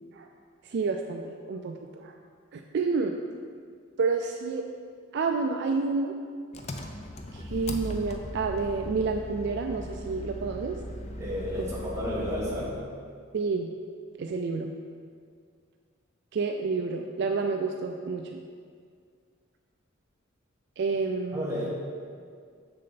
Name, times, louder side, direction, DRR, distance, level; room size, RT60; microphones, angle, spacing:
voice 1, 0.6-2.1 2.5-3.2 4.0-4.7 5.1-6.1 7.3-10.8 13.3-13.7 14.2-14.7 16.3-18.4 20.8-21.7, right 4 dB, 55° right, 4 dB, 0.3 m, -29 dB
Engine, 6.5-12.8, left 1 dB, 30° left, 0.5 m, -38 dB
voice 2, 11.2-12.8 21.3-21.7, left 1 dB, 15° right, -6 dB, 1.4 m, -32 dB
6.6 x 6.5 x 4.0 m, 2.1 s
head